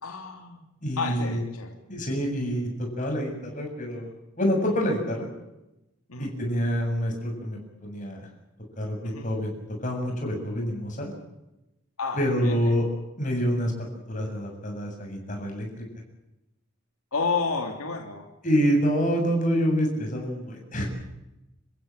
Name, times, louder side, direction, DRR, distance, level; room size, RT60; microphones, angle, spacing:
voice 1, 0.0-0.6 1.0-1.8 6.1-6.3 9.0-9.3 12.0-12.8 17.1-18.3, left 4 dB, 90° left, 3 dB, 3.1 m, -31 dB
voice 2, 0.8-1.4 1.9-4.1 4.4-5.3 6.2-8.3 8.8-9.5 9.8-11.1 12.2-12.9 13.2-15.8 18.4-20.9, equal, 35° left, 1 dB, 7.6 m, -27 dB
28.5 x 15.0 x 9.0 m, 0.93 s
head